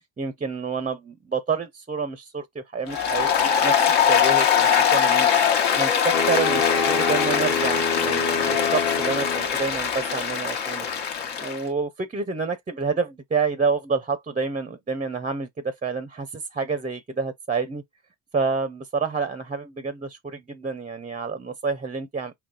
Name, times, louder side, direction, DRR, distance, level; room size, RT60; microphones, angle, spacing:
voice 1, 0.2-5.3 5.7-10.9 11.4-17.8 18.3-22.3, right 4 dB, 20° right, 0.5 m, -28 dB
Applause, 2.9-11.6, left 8 dB, 70° left, 1.2 m, -22 dB
sound 1, 6.1-9.5, left 4 dB, 40° left, 0.9 m, -26 dB
3.9 x 2.1 x 3.8 m
cardioid pair, 85°, 44 cm